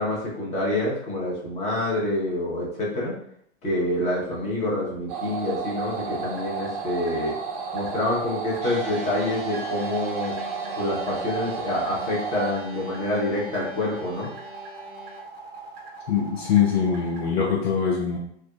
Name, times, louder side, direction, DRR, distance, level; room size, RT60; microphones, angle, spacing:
voice 1, 0.0-3.1 3.6-7.4 7.7-10.4 10.8-14.3, left 1 dB, 20° left, -5 dB, 0.9 m, -27 dB
sound 1, 5.1-12.5, right 6 dB, 30° right, 0.4 m, -32 dB
sound 2, 5.9-17.3, right 3 dB, 55° right, 1.1 m, -42 dB
sound 3, 8.6-15.2, equal, 90° right, 1.1 m, -42 dB
voice 2, 16.1-18.2, left 7 dB, 60° left, -1 dB, 0.6 m, -23 dB
3.4 x 2.0 x 2.4 m, 0.67 s
hypercardioid pair, 110°, 34 cm